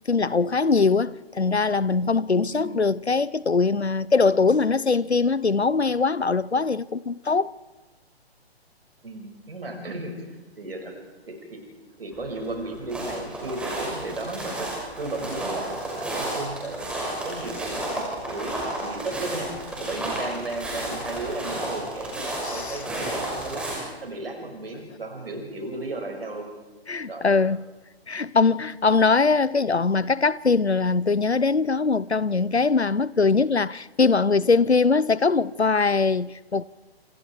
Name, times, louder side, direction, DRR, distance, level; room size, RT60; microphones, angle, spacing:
voice 1, 0.1-7.5 22.4-22.8 26.9-27.6 28.1-36.6, left 4 dB, 85° left, 0.8 m, -22 dB
voice 2, 2.5-2.8 9.0-10.9 11.3-11.6 12.0-16.9 17.2-19.5 19.8-23.7 24.0-26.5 27.1-27.5, right 2 dB, 65° right, 6.1 m, -35 dB
sound 1, 12.1-23.8, right 1 dB, 5° right, 6.0 m, -32 dB
29.5 x 27.0 x 4.7 m
figure-of-eight pair, 130°, 32 cm